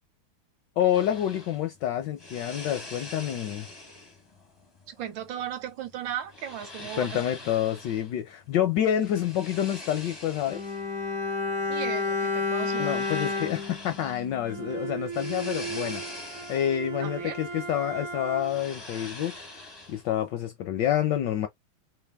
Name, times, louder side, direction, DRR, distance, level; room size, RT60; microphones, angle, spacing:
voice 1, 0.8-3.7 7.0-10.6 12.8-16.0 16.5-19.4 19.9-21.5, left 11 dB, 75° left, 1.0 m, -28 dB
sound 1, 0.9-20.3, left 2 dB, 30° left, 0.4 m, -45 dB
voice 2, 4.9-7.2 11.7-13.1 17.0-17.4, right 10 dB, 70° right, 1.4 m, -36 dB
Bowed string instrument, 10.5-14.9 15.2-15.3, left 4 dB, 15° right, 0.6 m, -30 dB
Bowed string instrument 2, 14.4-18.8, right 5 dB, 50° right, 1.0 m, -37 dB
3.4 x 2.3 x 3.3 m
omnidirectional pair, 2.3 m